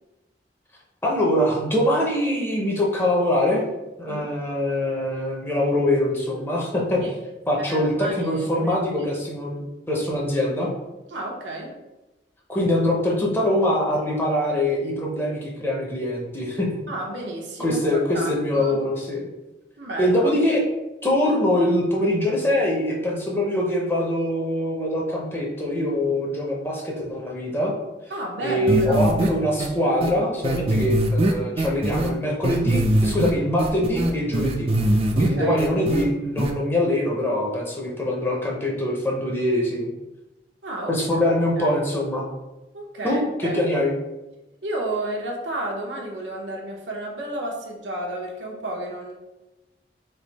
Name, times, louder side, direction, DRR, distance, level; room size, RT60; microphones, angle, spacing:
voice 1, 1.0-3.6 4.0-7.0 7.5-10.7 12.5-16.7 17.6-19.3 20.0-20.6 21.0-27.7 28.4-34.7 35.2-39.9 40.9-42.2 43.0-43.9, left 1 dB, 10° left, -2 dB, 0.6 m, -23 dB
voice 2, 7.7-9.1 11.1-11.7 16.9-17.8 18.1-18.8 19.8-20.3 28.1-29.1 35.1-35.6 40.6-41.2 41.6-41.8 42.7-43.7 44.6-49.1, right 1 dB, 90° right, -1 dB, 0.9 m, -32 dB
sound 1, 28.7-29.3 29.6-29.7 30.0-30.1 30.4-32.1 32.4-33.3 33.6-35.3 35.6-36.0 36.4-36.5, right 1 dB, 30° right, 0.3 m, -21 dB
3.4 x 2.6 x 4.1 m, 1.0 s
head